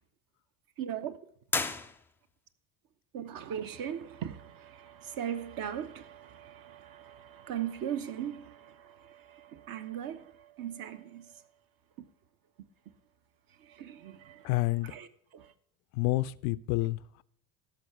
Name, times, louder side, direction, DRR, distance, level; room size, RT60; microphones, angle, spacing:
voice 1, 0.8-1.2 3.1-10.3 10.6-11.3 13.8-14.4 14.9-15.1 15.3-15.5, right 9 dB, 45° right, 1.1 m, -39 dB
sound 1, 1.5-2.5, left 3 dB, 5° left, 0.3 m, -34 dB
voice 2, 14.4-14.9 15.9-17.2, left 19 dB, 60° left, 0.5 m, -29 dB
14.0 x 5.9 x 4.7 m
hypercardioid pair, 65°, 49 cm